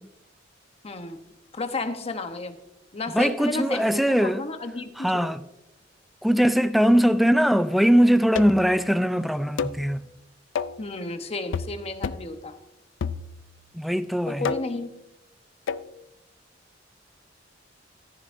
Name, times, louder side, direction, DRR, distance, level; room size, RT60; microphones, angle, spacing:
voice 1, 0.8-1.2 1.5-2.6 2.9-5.2 10.8-12.6 14.3-14.9, left 2 dB, 35° left, 0.9 m, -32 dB
voice 2, 3.1-4.4 5.0-5.4 6.2-10.0 13.7-14.4, equal, ahead, 0.4 m, -21 dB
sound 1, 8.4-8.7 9.6-9.9 10.6-10.9 11.5-11.8 12.0-12.3 13.0-13.6 14.4-14.9 15.7-15.9, left 6 dB, 85° left, 0.4 m, -30 dB
14.5 x 10.0 x 2.6 m
head